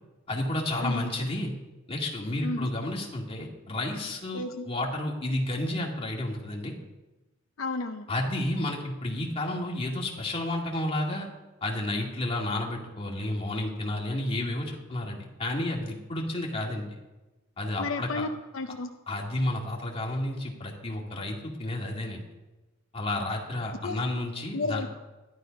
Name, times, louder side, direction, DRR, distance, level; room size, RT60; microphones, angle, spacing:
voice 1, 0.3-1.5 1.9-6.7 8.1-11.3 11.6-17.0 17.6-18.3 19.1-22.2 22.9-24.8, left 1 dB, 25° left, -1 dB, 2.3 m, -31 dB
voice 2, 4.3-4.7 7.6-8.1 17.8-18.3 18.5-18.9 23.8-24.1 24.5-25.0, left 3 dB, 70° left, 6 dB, 0.7 m, -32 dB
13.5 x 11.5 x 5.3 m, 1.1 s
head